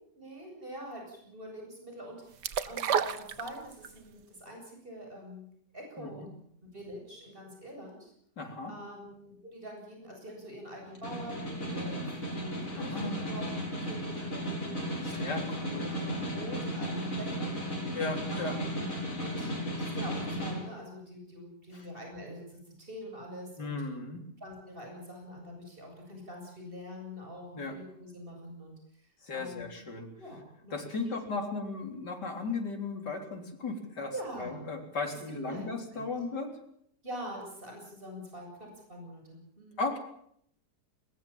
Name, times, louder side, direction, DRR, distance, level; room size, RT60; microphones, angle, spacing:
voice 1, 0.1-5.5 5.7-6.3 6.7-8.1 8.7-13.4 13.8-15.1 15.9-17.6 18.3-23.8 24.4-29.0 29.3-29.9 30.2-31.5 34.1-34.7 35.4-36.1 37.0-39.8, equal, 30° right, 1 dB, 8.0 m, -45 dB
sound 1, 2.4-4.0 4.3-4.4, right 8 dB, 75° right, 1.7 m, -30 dB
voice 2, 6.0-6.3 8.4-8.7 12.8-13.5 15.0-15.9 17.9-18.6 21.7-21.9 23.6-24.2 27.6-27.8 29.2-30.1 30.7-34.1 34.4-36.5 39.8-40.0, left 3 dB, 70° left, 4 dB, 4.4 m, -36 dB
Snare drum, 10.8-20.6, equal, 45° left, 7.7 m, -35 dB
21.5 x 21.0 x 7.4 m, 0.69 s
omnidirectional pair, 1.9 m